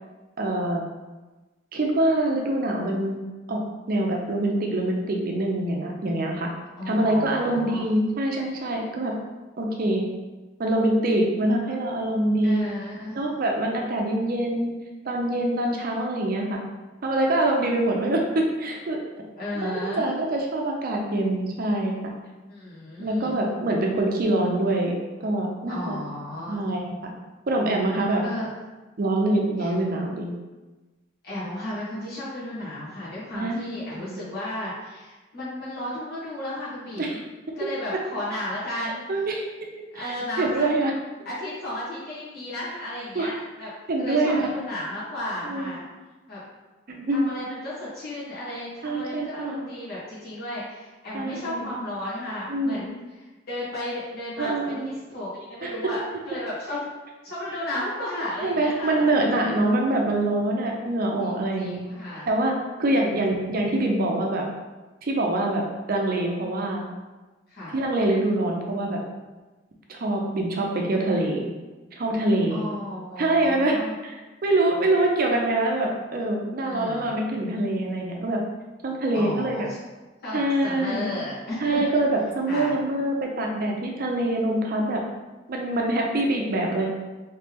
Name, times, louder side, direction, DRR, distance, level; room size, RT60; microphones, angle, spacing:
voice 1, 0.4-0.8 1.7-3.2 3.5-3.6 3.9-6.5 6.9-9.1 9.6-10.0 10.6-12.6 13.1-14.7 15.1-16.6 17.0-19.0 19.6-22.1 23.0-26.0 26.5-26.9 27.5-28.2 29.0-30.3 33.3-34.2 37.0-37.2 37.9-38.0 38.8-39.4 40.0-40.9 43.1-43.3 43.9-44.5 45.5-45.7 46.9-47.4 48.8-49.7 51.1-51.7 52.5-52.8 54.4-54.9 55.6-55.7 58.4-61.9 62.2-64.5 65.0-66.8 67.7-69.0 69.9-71.5 71.9-72.6 73.2-73.8 74.0-74.2 74.4-78.4 78.8-79.7 80.3-81.1 81.6-85.0 85.5-86.9, right 1 dB, 50° right, 1 dB, 0.5 m, -25 dB
voice 2, 6.8-7.9 12.4-13.2 19.4-20.1 22.5-23.3 25.7-26.6 28.2-28.5 29.6-29.7 31.2-37.2 37.5-39.0 39.9-40.6 41.2-43.7 44.0-45.8 46.3-46.4 47.1-56.9 57.2-59.1 61.2-62.3 62.8-63.0 67.5-67.8 72.5-73.9 76.7-77.2 79.1-79.8 80.2-81.8 82.5-82.7, left 1 dB, 55° left, -10 dB, 1.5 m, -34 dB
3.2 x 3.2 x 3.4 m, 1.2 s
head